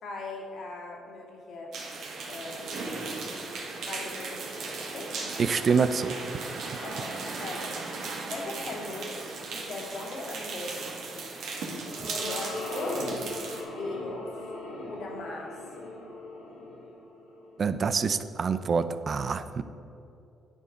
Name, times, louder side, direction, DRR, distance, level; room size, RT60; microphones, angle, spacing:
voice 1, 0.0-1.7 2.3-3.1 3.8-5.4 6.8-7.8 8.2-9.2 9.5-10.8 11.1-11.3 12.2-13.0 13.6-14.3 14.9-15.5, left 2 dB, 65° left, -1 dB, 2.3 m, -39 dB
sound 1, 1.7-13.6, right 3 dB, 75° right, 1.9 m, -37 dB
voice 2, 5.4-6.2 12.0-12.1 17.6-19.6, right 5 dB, 45° right, 12 dB, 0.5 m, -26 dB
sound 2, 11.3-17.8, left 1 dB, 90° left, 2.1 m, -39 dB
9.9 x 7.0 x 5.1 m, 2.7 s
cardioid pair, 90°, 0 cm